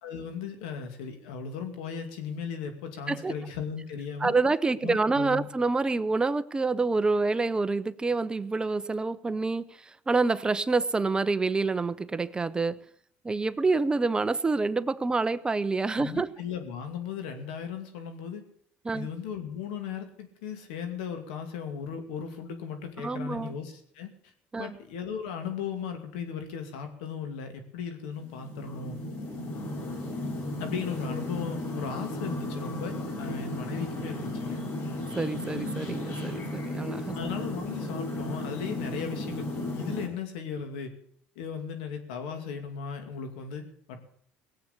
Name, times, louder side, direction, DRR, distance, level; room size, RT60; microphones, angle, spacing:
voice 1, 0.0-4.3 4.8-5.5 16.0-18.4 18.9-24.3 24.6-29.0 30.6-34.6 37.1-39.5 39.7-40.9 41.4-44.0, left 7 dB, 90° left, 6 dB, 2.5 m, -37 dB
voice 2, 4.2-12.8 13.2-16.3 18.8-19.1 23.0-23.5 24.5-24.7 35.2-37.2, right 3 dB, 20° right, 14 dB, 0.7 m, -27 dB
sound 1, 28.2-40.1, left 1 dB, 60° left, 5.8 m, -35 dB
18.0 x 8.1 x 8.3 m, 0.66 s
supercardioid pair, 95°, 5 cm